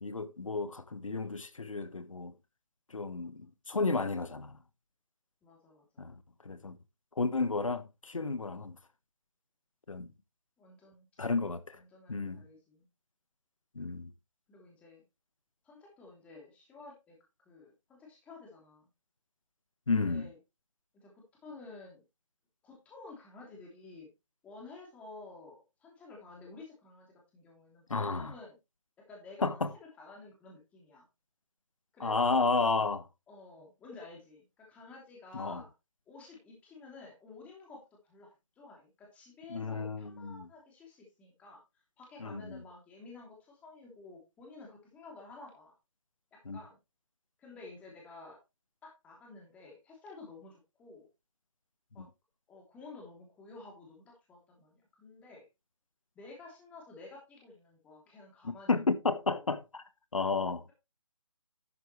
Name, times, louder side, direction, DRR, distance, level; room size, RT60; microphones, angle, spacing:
voice 1, 0.0-2.3 2.9-4.6 6.0-6.1 6.4-6.8 7.2-8.8 9.9-10.1 11.2-11.8 12.1-12.4 13.7-14.1 19.9-20.3 27.9-28.3 29.4-29.7 32.0-33.1 35.3-35.6 39.5-40.5 42.2-42.6 46.4-46.6 52.0-52.1 58.7-59.8 60.1-60.6, left 3 dB, 85° left, 1.3 m, -32 dB
voice 2, 3.1-3.5 5.4-6.0 10.6-11.1 11.8-12.9 14.5-15.0 15.6-17.2 17.4-18.9 19.9-20.4 20.9-21.1 21.4-22.0 22.6-24.1 24.4-28.6 29.1-31.1 31.9-32.5 33.3-35.7 36.1-37.8 38.0-41.6 42.0-45.7 46.5-46.8 47.4-48.4 48.8-51.1 51.9-52.1 52.5-55.4 56.1-58.7 59.0-59.5, left 3 dB, 10° left, 3.1 m, -52 dB
12.0 x 7.9 x 3.2 m
figure-of-eight pair, 160°, 16 cm